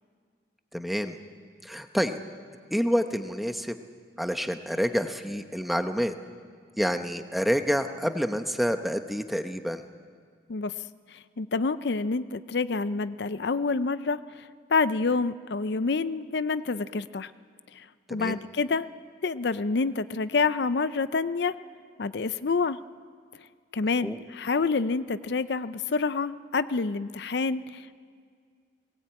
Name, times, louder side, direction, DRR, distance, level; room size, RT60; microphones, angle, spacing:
voice 1, 0.7-1.2 1.6-2.2 2.7-3.8 4.2-6.1 6.8-9.8 18.1-18.4 24.0-24.2, equal, ahead, 7 dB, 0.9 m, -28 dB
voice 2, 11.1-14.4 14.7-17.3 17.7-17.9 18.1-18.9 19.2-21.6 22.0-22.8 23.7-28.1, left 4 dB, 65° left, 14 dB, 0.5 m, -28 dB
20.5 x 19.0 x 8.8 m, 2.1 s
head